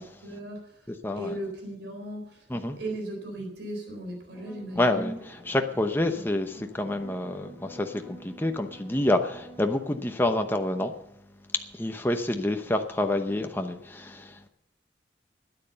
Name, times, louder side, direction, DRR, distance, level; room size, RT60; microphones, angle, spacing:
voice 1, 0.2-5.2 6.1-6.2, right 1 dB, 75° right, 3.9 m, -37 dB
voice 2, 1.0-1.3 2.5-2.8 4.8-5.1 5.5-10.9 11.7-14.5, left 1 dB, 10° left, 0.8 m, -28 dB
sound 1, 4.3-9.8, right 1 dB, 15° right, 6.5 m, -49 dB
13.0 x 9.9 x 6.8 m
head